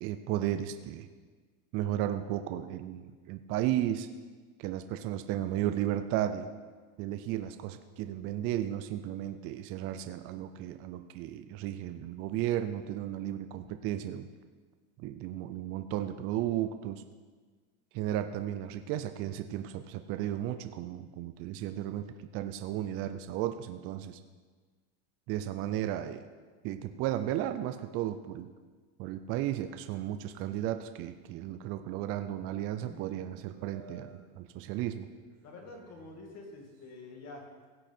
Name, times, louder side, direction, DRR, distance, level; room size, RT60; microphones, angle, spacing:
voice 1, 0.0-1.1 1.7-4.1 4.6-6.5 7.0-14.3 15.0-17.0 17.9-22.0 22.3-24.2 25.3-26.2 26.6-28.5 29.0-35.1, right 12 dB, 35° right, 9 dB, 0.4 m, -34 dB
sound 1, 32.0-37.0, right 4 dB, 50° right, 2.9 m, -56 dB
voice 2, 35.4-37.7, left 2 dB, 40° left, 1 dB, 2.3 m, -47 dB
16.5 x 6.4 x 4.3 m, 1.4 s
supercardioid pair, 145°, 42 cm